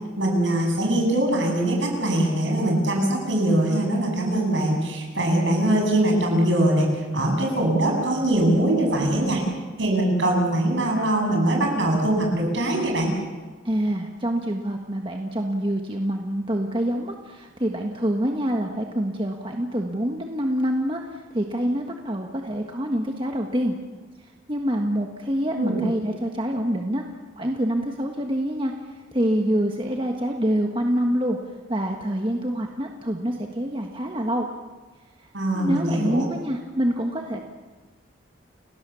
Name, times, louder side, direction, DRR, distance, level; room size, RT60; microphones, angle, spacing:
voice 1, 0.2-9.4 9.8-13.1 25.5-25.8 35.3-36.3, right 1 dB, 65° right, 1 dB, 7.5 m, -22 dB
voice 2, 13.6-23.8 24.5-27.0 27.3-31.4 31.7-34.5 35.5-37.4, equal, 25° right, 2 dB, 1.5 m, -26 dB
30.0 x 18.0 x 7.1 m, 1.3 s
head